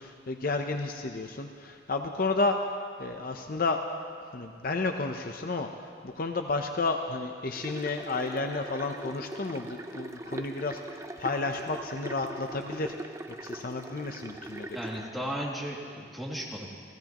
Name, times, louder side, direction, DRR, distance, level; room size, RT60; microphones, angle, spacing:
voice 1, 0.0-2.6 3.0-3.8 4.3-13.0 13.4-14.7, left 3 dB, 50° left, 5 dB, 0.7 m, -31 dB
sound 1, 7.5-15.1, right 1 dB, 15° right, 0.6 m, -41 dB
voice 2, 14.7-16.7, equal, ahead, -5 dB, 2.4 m, -35 dB
30.0 x 15.5 x 3.0 m, 2.2 s
head